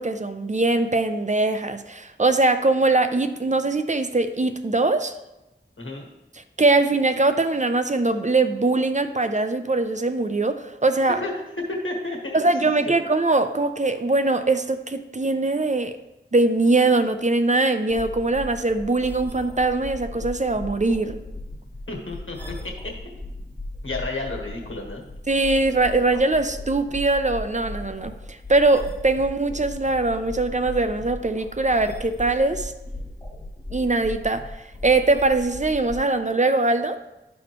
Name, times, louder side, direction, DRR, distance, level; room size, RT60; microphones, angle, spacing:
voice 1, 0.0-5.1 6.6-11.2 12.3-16.0 16.3-21.2 25.3-32.7 33.7-34.4 34.8-37.0, right 2 dB, 35° right, 9 dB, 0.5 m, -22 dB
voice 2, 11.7-12.4 12.8-12.9 21.9-22.4 22.6-22.7 23.8-25.0, left 2 dB, 80° left, -1 dB, 1.5 m, -31 dB
sound 1, 17.9-36.0, left 1 dB, 15° left, 2.4 m, -37 dB
12.0 x 4.3 x 3.0 m, 0.97 s
wide cardioid pair, 45°, 20 cm